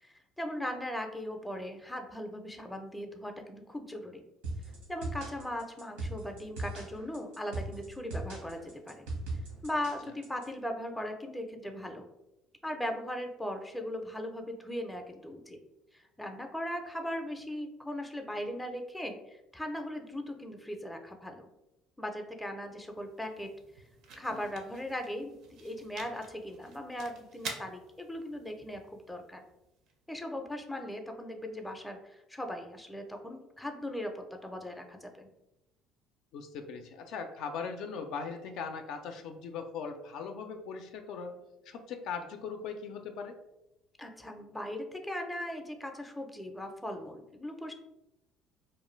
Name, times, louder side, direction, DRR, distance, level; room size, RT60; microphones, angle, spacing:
voice 1, 0.0-4.2 4.9-9.1 9.6-12.1 12.6-15.6 15.9-21.5 22.0-23.5 24.2-29.4 30.1-35.3 44.0-47.7, left 1 dB, 5° left, 4 dB, 0.4 m, -39 dB
sound 1, 4.4-10.4, right 2 dB, 90° right, 0.9 m, -39 dB
sound 2, 22.6-30.6, right 4 dB, 70° right, 0.5 m, -49 dB
voice 2, 36.3-41.4 41.7-43.4, left 5 dB, 70° left, 5 dB, 0.3 m, -39 dB
2.5 x 2.2 x 3.0 m, 0.91 s
supercardioid pair, 85°, 0 cm